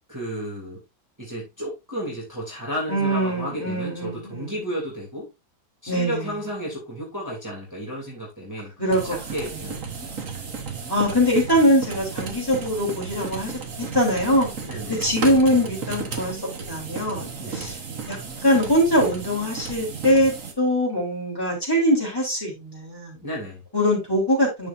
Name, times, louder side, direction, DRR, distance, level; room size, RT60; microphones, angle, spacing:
voice 1, 0.1-0.8 1.2-5.3 5.8-8.7 9.0-10.4 14.6-15.0 17.4-17.7 23.2-23.6, equal, 10° right, -4 dB, 2.9 m, -33 dB
voice 2, 2.9-4.6 5.9-6.3 8.8-9.2 9.5-9.6 10.9-13.5 13.8-14.5 14.9-17.8 18.1-23.2 23.7-24.7, equal, 15° left, -3 dB, 3.6 m, -22 dB
sound 1, 8.9-20.5, right 5 dB, 55° right, 1.7 m, -33 dB
11.5 x 5.1 x 2.6 m, 0.23 s
omnidirectional pair, 1.7 m